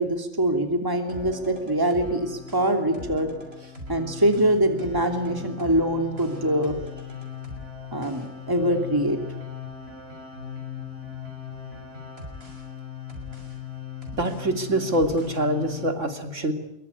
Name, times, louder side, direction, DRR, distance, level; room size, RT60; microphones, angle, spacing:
voice 1, 0.0-3.3 3.9-6.8 7.9-9.2, right 1 dB, 15° right, 5 dB, 3.0 m, -24 dB
sound 1, 1.1-15.9, left 6 dB, 50° right, 6.6 m, -39 dB
voice 2, 14.1-16.5, right 1 dB, 70° right, 7 dB, 3.4 m, -25 dB
26.5 x 23.5 x 9.7 m, 0.84 s
omnidirectional pair, 1.3 m